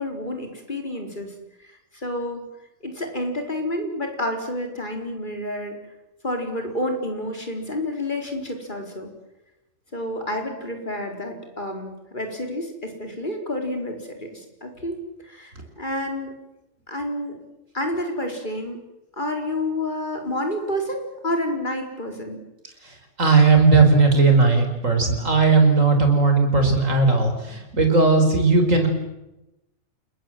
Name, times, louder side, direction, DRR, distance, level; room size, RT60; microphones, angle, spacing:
voice 1, 0.0-1.3 1.7-2.4 2.8-5.8 6.2-9.1 9.9-14.9 15.2-16.4 16.9-17.4 17.7-18.8 19.2-22.4, left 1 dB, 35° left, 4 dB, 4.7 m, -29 dB
voice 2, 22.8-28.9, right 4 dB, 70° right, 5 dB, 5.1 m, -17 dB
29.0 x 21.0 x 7.7 m, 0.93 s
omnidirectional pair, 1.4 m